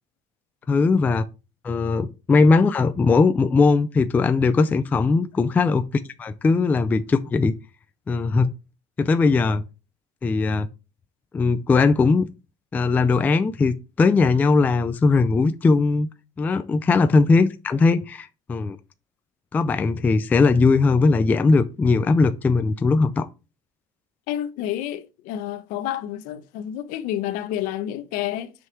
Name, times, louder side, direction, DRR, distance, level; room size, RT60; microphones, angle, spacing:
voice 1, 0.7-1.2 1.6-5.9 6.2-7.5 8.1-8.5 9.0-9.6 10.2-10.7 11.3-12.3 12.7-16.1 16.4-18.8 19.5-23.3, left 4 dB, 10° left, 0.3 m, -19 dB
voice 2, 24.3-28.5, left 12 dB, 65° left, 0.9 m, -29 dB
6.4 x 5.5 x 4.6 m
cardioid pair, 175°, 15 cm